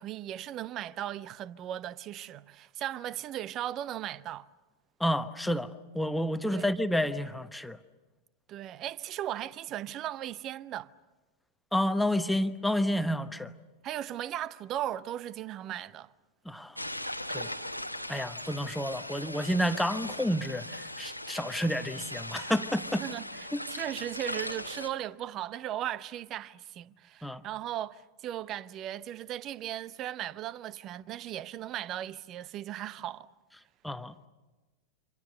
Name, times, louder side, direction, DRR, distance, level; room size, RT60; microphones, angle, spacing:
voice 1, 0.0-4.5 6.5-6.7 8.5-10.9 13.8-16.1 23.0-33.3, right 12 dB, 35° right, 0.8 m, -37 dB
voice 2, 5.0-7.8 11.7-13.5 16.5-16.7 17.3-17.5 18.1-23.0 23.5-23.6 27.2-27.4 33.8-34.3, equal, 5° left, 1.1 m, -30 dB
sound 1, 16.8-24.9, left 1 dB, 90° left, 1.3 m, -39 dB
28.0 x 26.0 x 6.7 m
figure-of-eight pair, 90°, 0 cm